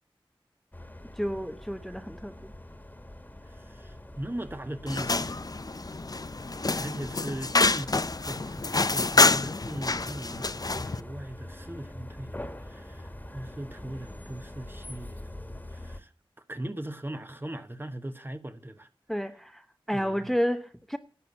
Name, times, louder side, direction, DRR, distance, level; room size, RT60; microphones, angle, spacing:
sound 1, 0.7-16.0, left 1 dB, 20° left, 1.7 m, -44 dB
voice 1, 1.2-2.5 19.1-21.0, equal, ahead, 0.9 m, -31 dB
voice 2, 3.6-5.4 6.7-16.1 16.5-18.9 19.9-20.3, right 1 dB, 25° right, 1.1 m, -39 dB
sound 2, 4.9-11.0, left 3 dB, 45° left, 0.6 m, -27 dB
11.5 x 7.8 x 9.7 m
wide cardioid pair, 55°, 9 cm